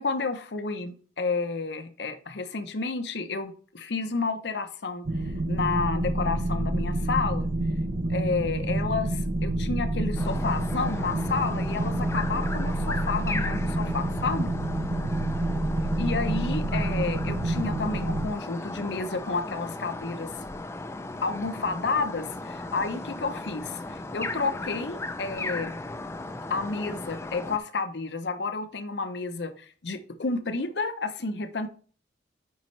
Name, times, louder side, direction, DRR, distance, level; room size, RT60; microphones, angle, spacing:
voice 1, 0.0-5.1 5.5-7.5 8.1-14.5 16.0-20.3 21.2-25.7 26.5-31.7, left 4 dB, 70° left, 9 dB, 0.7 m, -31 dB
sound 1, 5.0-18.3, right 1 dB, 60° right, 0.8 m, -28 dB
sound 2, 10.2-27.6, left 2 dB, 15° left, 0.4 m, -36 dB
9.3 x 5.4 x 3.2 m, 0.42 s
head